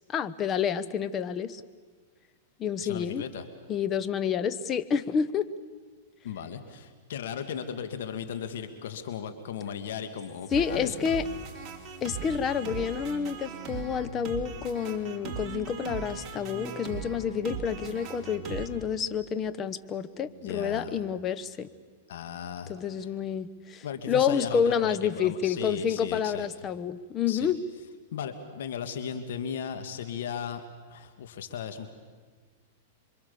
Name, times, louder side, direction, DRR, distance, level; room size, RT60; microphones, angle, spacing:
voice 1, 0.1-1.6 2.6-3.2 3.7-5.5 10.5-11.2 12.0-21.7 22.7-27.6, left 7 dB, 25° left, 12 dB, 1.0 m, -29 dB
voice 2, 2.8-3.4 6.2-11.0 20.2-21.0 22.1-23.1 23.8-26.5 27.3-27.5 28.1-30.6 30.9-31.9, left 7 dB, 75° left, 8 dB, 2.0 m, -36 dB
sound 1, 10.5-18.7, right 5 dB, 25° right, 3.2 m, -39 dB
27.5 x 24.0 x 7.0 m, 1.5 s
hypercardioid pair, 135°, 0 cm